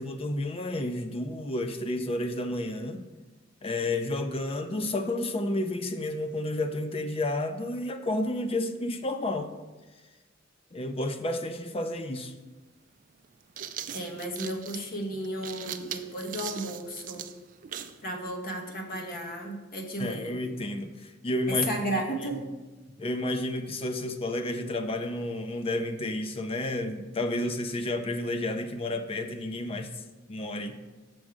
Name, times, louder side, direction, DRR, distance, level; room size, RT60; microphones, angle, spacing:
voice 1, 0.0-3.0 3.6-9.5 10.7-12.3 20.0-21.7 22.2-22.3 23.0-29.9 30.3-30.8, left 1 dB, 30° left, 8 dB, 0.5 m, -31 dB
sound 1, 12.2-12.3 13.2-18.0, right 9 dB, 40° right, 0.4 m, -40 dB
voice 2, 13.9-17.3 18.0-20.4 21.5-22.4, equal, 45° left, 2 dB, 1.1 m, -33 dB
6.3 x 6.2 x 4.9 m, 1.2 s
head